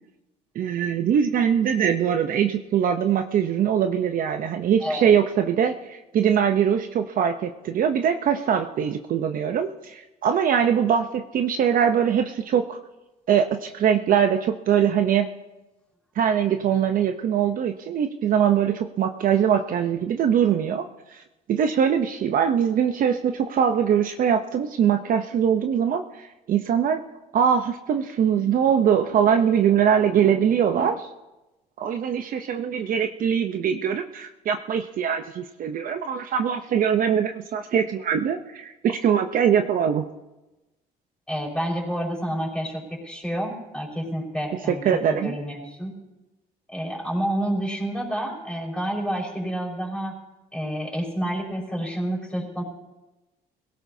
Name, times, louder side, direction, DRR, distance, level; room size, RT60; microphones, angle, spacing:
voice 1, 0.6-12.8 13.3-15.3 16.2-20.9 21.1-21.2 21.5-27.0 27.3-31.1 31.8-40.0 44.8-45.3, right 8 dB, 55° right, 7 dB, 0.8 m, -22 dB
voice 2, 41.3-45.9 46.7-50.1 50.5-52.6, equal, 5° left, -2 dB, 4.9 m, -29 dB
23.0 x 17.0 x 2.8 m, 1.0 s
cardioid pair, 110°, 17 cm